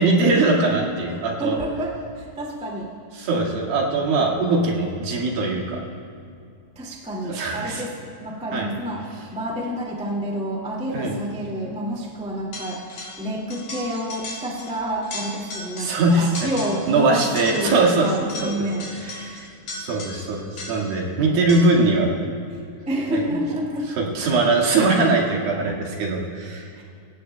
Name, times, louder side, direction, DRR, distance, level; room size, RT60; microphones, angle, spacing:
voice 1, 0.0-1.6 3.2-5.8 7.3-7.8 8.5-8.7 10.9-11.1 15.8-16.3 16.9-18.1 18.4-18.5 19.1-19.5 19.8-22.1 23.1-23.2 24.0-26.7, right 3 dB, 70° right, -2 dB, 3.6 m, -21 dB
voice 2, 1.1-2.9 6.7-18.9 22.8-23.9 26.7-26.8, equal, 10° right, -3 dB, 0.4 m, -29 dB
sound 1, 12.5-13.3 13.5-14.8 15.0-16.0 16.4-17.0 17.4-21.0 21.5-21.9, left 2 dB, 55° left, 4.1 m, -36 dB
25.5 x 16.5 x 2.3 m, 2.4 s
omnidirectional pair, 4.5 m